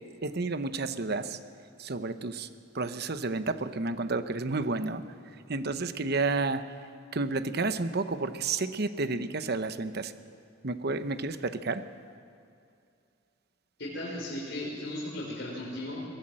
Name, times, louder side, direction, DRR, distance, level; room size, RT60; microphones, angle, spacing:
voice 1, 0.2-1.4 1.8-2.5 2.7-5.0 5.5-6.6 7.1-10.1 10.6-11.8, right 3 dB, 55° right, 11 dB, 1.0 m, -31 dB
voice 2, 13.8-16.0, left 1 dB, 60° left, -6 dB, 4.9 m, -36 dB
22.5 x 17.0 x 7.7 m, 2.4 s
head